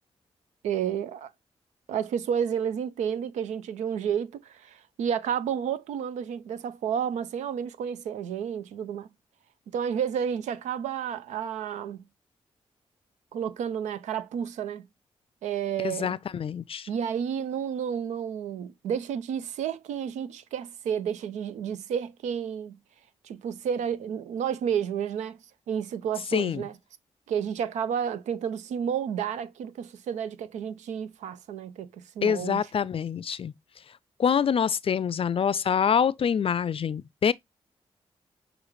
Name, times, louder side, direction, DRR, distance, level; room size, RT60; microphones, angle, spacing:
voice 1, 0.6-1.3 1.9-9.1 9.7-12.0 13.3-14.9 15.4-16.2 16.9-22.8 23.2-25.4 25.7-26.7 27.3-32.6, right 8 dB, 85° right, 0.5 m, -31 dB
voice 2, 15.8-16.9 26.3-26.6 32.2-33.5 34.2-37.3, left 7 dB, 50° left, 0.4 m, -25 dB
6.3 x 2.5 x 3.1 m
supercardioid pair, 45°, 12 cm